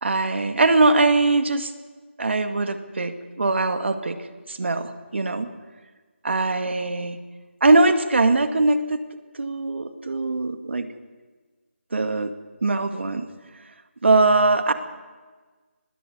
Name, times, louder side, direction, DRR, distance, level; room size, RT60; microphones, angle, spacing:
voice 1, 0.0-1.7 2.2-4.2 4.5-5.5 6.2-7.2 7.6-9.0 9.3-10.9 11.9-12.3 12.6-13.2 14.0-14.7, right 3 dB, 60° right, 8 dB, 2.1 m, -21 dB
20.5 x 16.5 x 8.2 m, 1.4 s
figure-of-eight pair, 165°, 7 cm